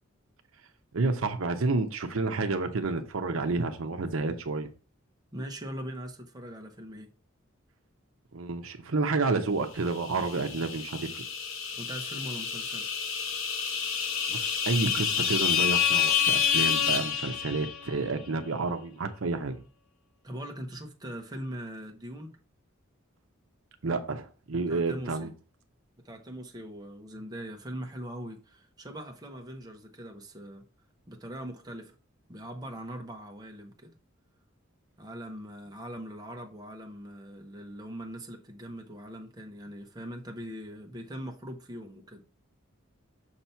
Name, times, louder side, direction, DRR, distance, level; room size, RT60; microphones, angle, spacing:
voice 1, 0.9-4.7 8.3-11.2 14.3-19.6 23.8-25.3, right 3 dB, 75° right, 0.7 m, -30 dB
voice 2, 5.3-7.1 11.8-12.9 20.2-22.4 24.7-25.3 26.0-30.7 31.1-31.9 32.3-33.9 35.0-42.2, equal, 20° right, 0.8 m, -41 dB
sound 1, 9.9-17.9, left 8 dB, 70° left, 0.9 m, -28 dB
6.6 x 2.9 x 5.6 m
head